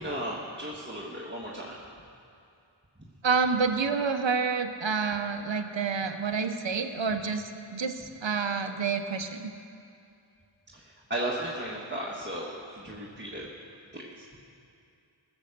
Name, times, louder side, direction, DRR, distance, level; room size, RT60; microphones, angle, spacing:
voice 1, 0.0-1.7 10.7-13.5 13.9-14.2, right 1 dB, 20° right, -4 dB, 1.5 m, -35 dB
voice 2, 3.2-7.4 7.7-9.5, right 5 dB, 65° right, 8 dB, 0.9 m, -28 dB
16.0 x 7.2 x 6.7 m, 2.5 s
wide cardioid pair, 45°, 48 cm